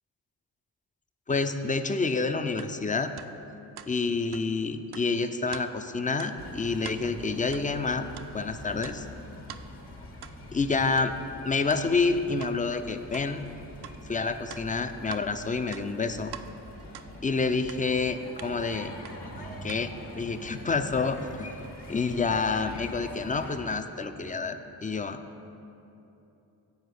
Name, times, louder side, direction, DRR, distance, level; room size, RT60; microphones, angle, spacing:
voice 1, 1.3-3.1 3.9-8.1 8.3-9.1 10.5-11.2 11.4-13.4 14.1-16.4 17.2-18.9 19.6-21.5 21.9-25.2, left 4 dB, 20° left, 9 dB, 0.4 m, -28 dB
sound 1, 2.6-2.7 3.2-3.3 3.8-3.9 4.3-4.4 4.9-5.1 5.5-5.7 6.2-6.3 6.7-7.0 7.5-7.7 8.1-8.3 8.8-9.0 9.5-9.6 10.2-10.4 11.0-11.1 11.7-11.8 12.4-12.5 13.1-13.3 13.8-14.0 14.5-15.3 15.6-16.5 16.9-17.1 17.7-17.8 18.4-18.5 19.0-19.1 19.7-19.8, right 10 dB, 65° right, 0.5 m, -43 dB
sound 2, 6.4-23.6, left 1 dB, 70° left, 1.4 m, -44 dB
8.0 x 4.6 x 6.8 m, 2.9 s
supercardioid pair, 50°, 43 cm